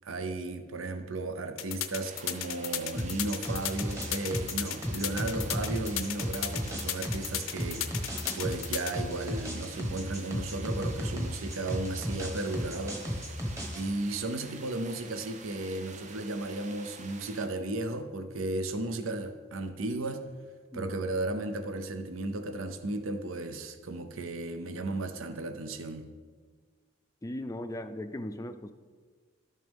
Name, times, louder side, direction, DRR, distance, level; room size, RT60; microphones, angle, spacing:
voice 1, 0.0-7.9 8.3-13.0 13.7-20.3 20.7-26.1, right 2 dB, 85° right, 9 dB, 0.6 m, -34 dB
sound 1, 1.6-8.9, left 12 dB, 80° left, 0.6 m, -34 dB
sound 2, 2.0-17.5, right 4 dB, 35° right, 0.6 m, -49 dB
sound 3, 2.9-13.9, equal, 15° right, 1.1 m, -35 dB
voice 2, 27.2-28.7, left 1 dB, 15° left, 9 dB, 0.3 m, -38 dB
12.0 x 6.5 x 3.5 m, 1.5 s
head